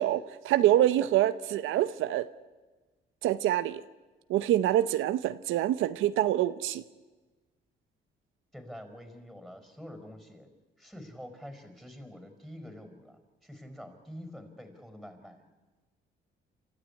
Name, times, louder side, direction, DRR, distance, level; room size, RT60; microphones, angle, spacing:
voice 1, 0.0-2.3 3.2-3.8 4.3-6.8, right 13 dB, 90° right, 13 dB, 0.8 m, -26 dB
voice 2, 8.5-10.5 10.8-15.4, equal, ahead, 8 dB, 4.6 m, -46 dB
28.5 x 13.5 x 9.8 m, 1.3 s
cardioid pair, 90°, 20 cm